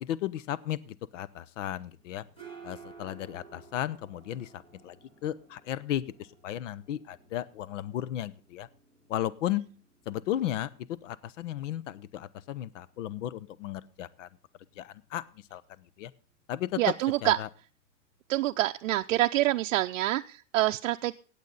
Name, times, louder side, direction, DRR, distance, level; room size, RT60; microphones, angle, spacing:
voice 1, 0.0-2.2 2.6-5.0 5.2-8.7 9.1-9.6 10.1-14.3 14.8-15.2 15.5-15.6 16.0-16.1 16.5-16.8 17.2-17.5, left 12 dB, 75° left, 19 dB, 0.8 m, -34 dB
sound 1, 1.9-19.4, right 5 dB, 15° left, 2.0 m, -57 dB
voice 2, 16.8-17.4 18.3-21.1, right 15 dB, 80° right, 5 dB, 0.6 m, -26 dB
17.0 x 8.3 x 3.9 m, 0.38 s
supercardioid pair, 170°, 38 cm